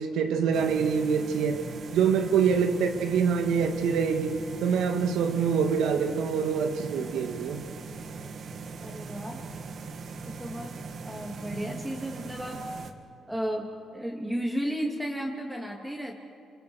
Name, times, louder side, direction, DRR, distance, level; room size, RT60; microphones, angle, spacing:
voice 1, 0.0-1.6 1.9-7.6, right 6 dB, 85° right, 2.0 m, -25 dB
sound 1, 0.5-12.9, right 4 dB, 60° right, 1.9 m, -40 dB
voice 2, 8.8-9.4 10.3-12.7 13.3-16.2, equal, 5° right, 2.9 m, -34 dB
27.5 x 26.0 x 6.5 m
cardioid pair, 90°, 0 cm